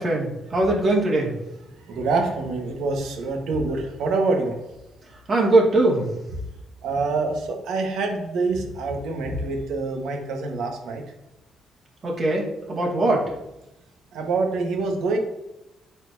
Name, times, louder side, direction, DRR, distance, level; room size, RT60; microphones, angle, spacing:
voice 1, 0.0-1.3 5.3-6.1 12.0-13.2, right 2 dB, 40° right, -2 dB, 2.2 m, -21 dB
voice 2, 1.8-4.6 6.8-11.0 14.1-15.2, right 3 dB, 80° right, 2 dB, 1.4 m, -26 dB
11.0 x 4.4 x 2.8 m, 0.92 s
cardioid pair, 90°, 0 cm